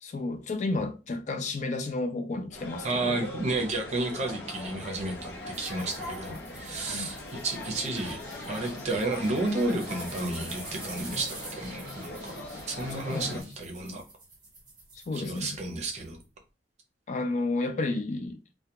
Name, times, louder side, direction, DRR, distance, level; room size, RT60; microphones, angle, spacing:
voice 1, 0.0-3.3 6.8-7.1 13.1-13.4 15.1-15.5 17.1-18.4, left 2 dB, 40° left, 0.3 m, -31 dB
sound 1, 2.5-13.4, left 1 dB, 65° left, 0.7 m, -41 dB
voice 2, 2.8-8.2 8.5-12.3 12.7-14.0 15.1-16.2, right 2 dB, 40° right, 0.6 m, -32 dB
sound 2, 5.5-16.1, right 1 dB, 20° right, 1.2 m, -46 dB
2.3 x 2.2 x 2.8 m
head